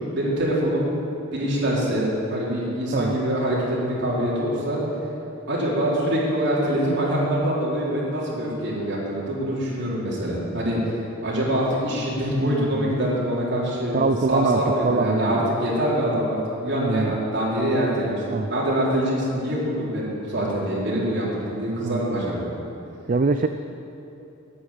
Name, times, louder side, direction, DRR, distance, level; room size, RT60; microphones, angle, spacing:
voice 1, 0.1-0.9 1.3-4.8 5.5-14.0 14.3-22.5, equal, 55° right, -6 dB, 4.0 m, -24 dB
voice 2, 12.4-12.9 13.9-15.5 16.7-17.2 18.3-18.5 21.8-22.0 23.1-23.5, right 3 dB, 40° right, 8 dB, 0.4 m, -24 dB
11.0 x 9.8 x 8.8 m, 2.9 s
head